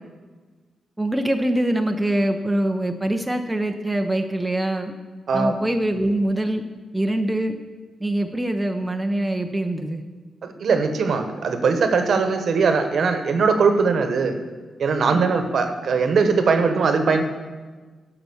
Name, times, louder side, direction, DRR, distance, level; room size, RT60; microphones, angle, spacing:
voice 1, 1.0-4.9 5.3-6.6 6.9-7.6 8.0-10.0 15.1-15.5, right 1 dB, 10° right, 5 dB, 0.6 m, -24 dB
voice 2, 10.4-14.4 14.8-17.2, right 5 dB, 60° right, 7 dB, 1.1 m, -20 dB
12.0 x 5.8 x 7.0 m, 1.4 s
wide cardioid pair, 135°, 0 cm